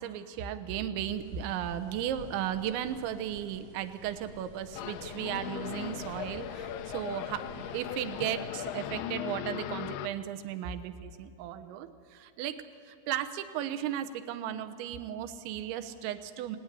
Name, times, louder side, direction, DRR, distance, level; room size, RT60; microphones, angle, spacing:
voice 1, 0.0-16.6, right 10 dB, 80° right, 10 dB, 3.3 m, -35 dB
sound 1, 1.0-8.4, right 2 dB, 60° right, 2.1 m, -52 dB
sound 2, 4.7-10.1, left 10 dB, 80° left, 2.4 m, -38 dB
26.5 x 19.0 x 9.9 m, 2.3 s
omnidirectional pair, 5.5 m